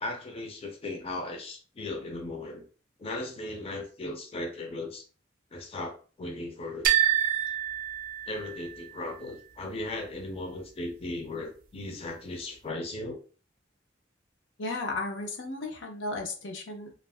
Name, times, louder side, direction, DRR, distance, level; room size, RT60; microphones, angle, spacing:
voice 1, 0.0-2.6 3.0-5.0 5.5-6.9 8.3-13.2, left 2 dB, 30° left, 3 dB, 0.5 m, -37 dB
sound 1, 6.8-8.8, right 11 dB, 50° right, 0.4 m, -27 dB
voice 2, 14.6-16.9, left 2 dB, 85° left, 2 dB, 0.7 m, -34 dB
2.4 x 2.1 x 3.3 m, 0.37 s
head